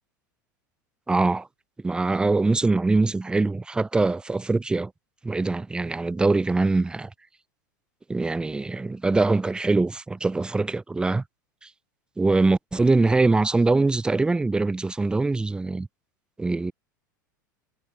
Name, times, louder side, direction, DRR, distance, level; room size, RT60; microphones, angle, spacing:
voice 1, 1.1-1.5 1.8-4.9 5.2-7.1 8.1-11.2 12.2-15.9 16.4-16.7, right 3 dB, 10° right, 0.6 m, -23 dB
figure-of-eight pair, 85°, 10 cm